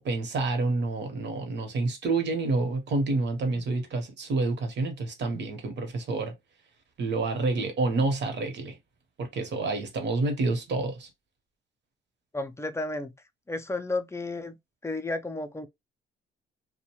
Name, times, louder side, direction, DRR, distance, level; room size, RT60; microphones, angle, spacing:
voice 1, 0.0-6.3 7.0-8.8 9.2-11.1, right 3 dB, 60° right, 0.9 m, -28 dB
voice 2, 12.3-13.1 13.5-14.6 14.8-15.7, left 2 dB, 15° left, 0.4 m, -32 dB
2.5 x 2.1 x 2.9 m
cardioid pair, 90°, 20 cm